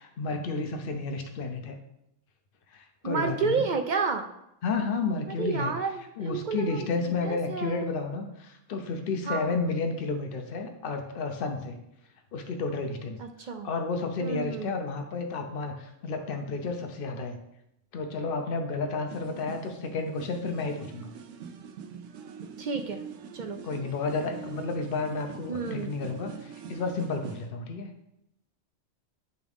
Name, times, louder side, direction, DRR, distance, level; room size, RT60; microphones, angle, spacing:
voice 1, 0.0-1.7 2.7-3.6 4.6-5.7 6.2-11.8 12.3-13.2 13.6-17.4 17.9-21.1 23.6-27.9, left 3 dB, 50° left, 5 dB, 0.9 m, -31 dB
voice 2, 3.0-4.3 5.4-7.9 9.2-9.5 13.2-13.7 14.2-14.7 22.6-23.0 23.3-23.6 25.5-25.9, right 5 dB, 55° right, 6 dB, 0.5 m, -31 dB
sound 1, 19.1-27.5, right 6 dB, 90° right, 1.0 m, -43 dB
10.5 x 3.6 x 3.5 m, 0.83 s
omnidirectional pair, 1.3 m